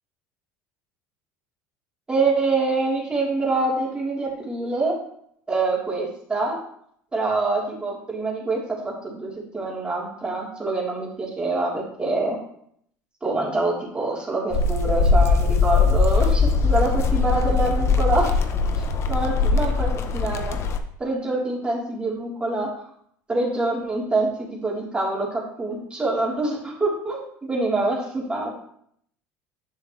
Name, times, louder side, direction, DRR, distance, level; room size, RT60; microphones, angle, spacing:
voice 1, 2.1-5.0 5.5-6.6 7.1-12.4 13.2-18.4 19.1-20.6 21.0-22.7 23.3-28.5, right 2 dB, 15° right, -4 dB, 3.6 m, -25 dB
sound 1, 14.5-20.8, left 4 dB, 45° left, 0.9 m, -21 dB
10.5 x 6.6 x 3.3 m, 0.67 s
supercardioid pair, 115°, 7 cm